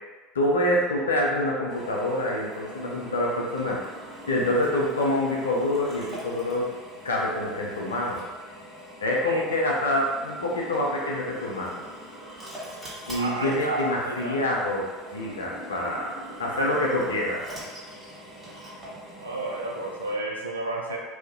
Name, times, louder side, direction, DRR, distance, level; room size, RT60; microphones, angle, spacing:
voice 1, 0.3-3.8 4.3-6.7 7.0-8.3 9.0-11.8 13.1-17.4, left 1 dB, 85° left, -2 dB, 0.4 m, -26 dB
Drill, 1.7-20.1, equal, 20° right, 0.9 m, -43 dB
voice 2, 13.2-14.6 19.2-21.0, right 2 dB, 90° right, -2 dB, 0.4 m, -31 dB
2.3 x 2.0 x 2.6 m, 1.3 s
figure-of-eight pair, 70°, 0 cm